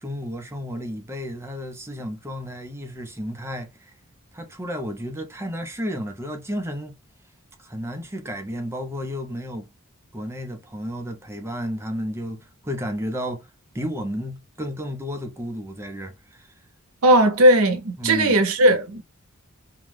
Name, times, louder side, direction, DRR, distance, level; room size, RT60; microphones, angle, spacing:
voice 1, 0.0-3.9 4.3-7.0 7.6-9.7 10.1-13.5 13.7-16.5 18.0-18.4, equal, 10° right, 0.5 m, -32 dB
voice 2, 17.0-19.0, right 1 dB, 75° right, 0.6 m, -17 dB
2.5 x 2.2 x 3.2 m
head